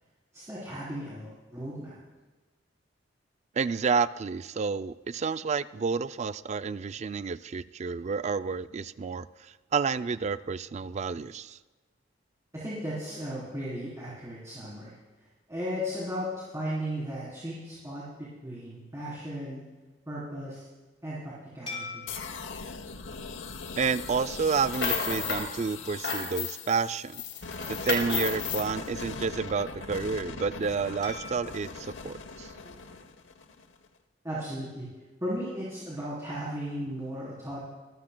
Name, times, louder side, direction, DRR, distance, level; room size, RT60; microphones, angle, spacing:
voice 1, 0.3-2.0 12.5-14.9 15.5-19.6 20.1-20.7 21.0-22.1 32.6-32.9 34.2-34.9 35.2-37.6, equal, 15° right, -8 dB, 3.6 m, -36 dB
voice 2, 3.6-11.6 23.8-27.2 27.7-32.5, right 5 dB, 35° right, 14 dB, 0.3 m, -30 dB
sound 1, 21.7-24.3 24.9-25.1 27.8-29.6 31.0-33.3, left 3 dB, 30° left, 5.3 m, -47 dB
sound 2, 22.1-33.9, left 4 dB, 85° left, 0.9 m, -40 dB
sound 3, 24.5-25.5 25.8-26.8 27.1-28.7, left 5 dB, 65° left, 2.1 m, -32 dB
25.0 x 13.5 x 2.2 m, 1.2 s
head